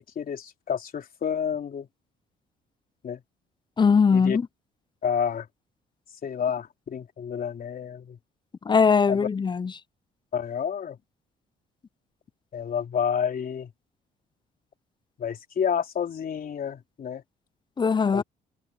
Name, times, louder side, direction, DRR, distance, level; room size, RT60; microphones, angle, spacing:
voice 1, 0.0-1.9 3.0-3.2 4.1-4.4 5.0-5.5 6.2-8.2 9.1-9.3 10.3-11.0 12.5-13.7 15.2-17.2 18.1-18.2, left 7 dB, 50° left, 3.7 m, -29 dB
voice 2, 3.8-4.5 8.7-9.7 17.8-18.2, left 5 dB, 25° left, 0.5 m, -20 dB
supercardioid pair, 75°, 19 cm